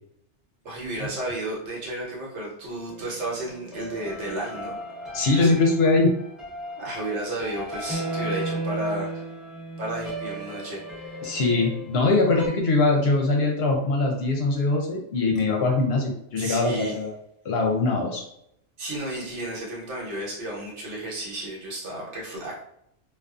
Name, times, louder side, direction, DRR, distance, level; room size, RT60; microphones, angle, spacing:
voice 1, 0.6-4.8 5.2-5.5 6.8-9.1 9.8-11.2 16.4-17.0 18.8-22.6, right 1 dB, 75° right, -4 dB, 1.2 m, -33 dB
sound 1, 2.9-12.5, right 1 dB, ahead, 0.6 m, -35 dB
voice 2, 5.1-6.1 11.2-17.2 17.4-18.2, left 3 dB, 65° left, 1 dB, 0.8 m, -22 dB
2.5 x 2.3 x 2.3 m, 0.75 s
omnidirectional pair, 1.2 m